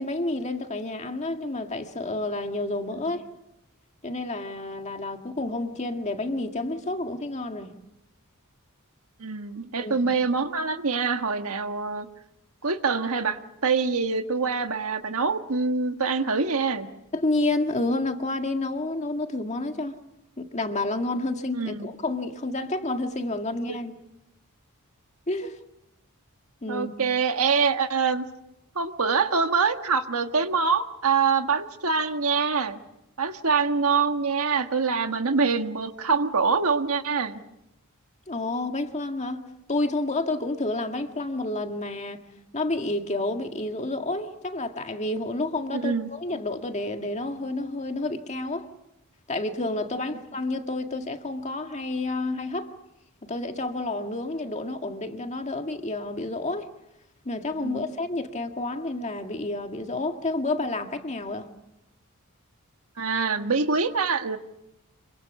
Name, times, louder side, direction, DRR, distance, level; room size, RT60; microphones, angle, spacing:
voice 1, 0.0-3.2 4.0-7.7 9.8-9.9 17.1-20.0 20.4-23.9 25.3-25.6 26.6-26.9 38.3-39.4 39.7-42.2 42.5-48.7 49.3-52.7 53.2-56.7 57.3-61.5, left 2 dB, 30° left, 1.9 m, -29 dB
voice 2, 9.2-12.1 12.6-16.9 21.5-21.9 23.7-23.8 26.7-28.3 28.7-32.8 33.2-37.4 45.7-46.1 57.6-57.9 63.0-64.4, right 5 dB, 75° right, 1.6 m, -25 dB
26.0 x 24.0 x 7.1 m
head